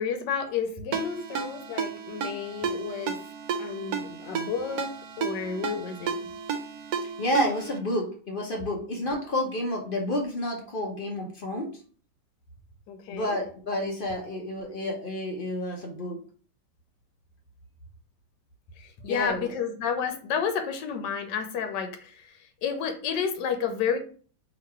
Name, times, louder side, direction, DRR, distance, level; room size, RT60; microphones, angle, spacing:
voice 1, 0.0-3.2 3.6-4.9 5.2-6.2 12.9-13.4 18.8-24.0, left 7 dB, 80° left, 6 dB, 1.3 m, -31 dB
Ringtone, 0.9-7.8, right 6 dB, 70° right, 1.0 m, -33 dB
voice 2, 7.2-11.7 13.1-16.2 19.1-19.5, left 1 dB, 50° left, 1 dB, 0.6 m, -30 dB
3.0 x 2.9 x 4.5 m, 0.42 s
omnidirectional pair, 1.9 m